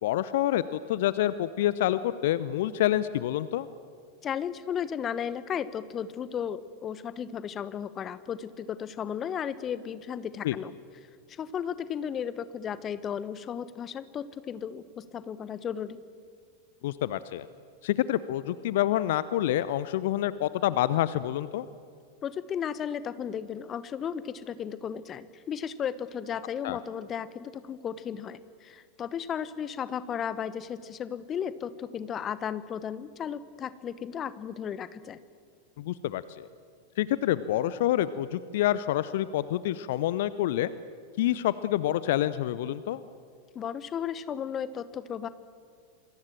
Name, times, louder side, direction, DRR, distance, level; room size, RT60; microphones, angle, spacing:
voice 1, 0.0-3.7 10.4-10.6 16.8-17.5 17.8-21.7 26.6-26.8 35.8-36.5 37.0-40.7 41.2-43.0, left 13 dB, 55° left, 16 dB, 0.7 m, -27 dB
voice 2, 4.2-10.7 11.3-16.0 22.2-35.2 43.5-45.3, left 8 dB, 25° left, 15 dB, 1.1 m, -34 dB
27.5 x 22.5 x 7.5 m, 2.2 s
figure-of-eight pair, 90°, 0 cm